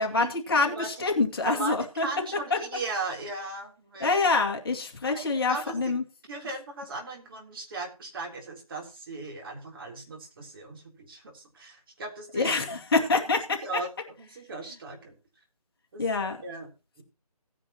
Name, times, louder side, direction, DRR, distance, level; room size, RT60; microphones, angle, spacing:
voice 1, 0.0-2.1 2.5-2.6 4.0-6.0 12.3-13.8 16.0-16.4, left 3 dB, 35° left, 2 dB, 2.2 m, -26 dB
voice 2, 1.4-4.1 5.1-5.8 6.3-12.5 13.6-13.9 14.2-15.1 15.9-16.0 16.4-16.7 17.0-17.1, right 3 dB, 35° right, 1 dB, 3.6 m, -37 dB
17.0 x 9.9 x 3.0 m, 0.31 s
figure-of-eight pair, 160°, 20 cm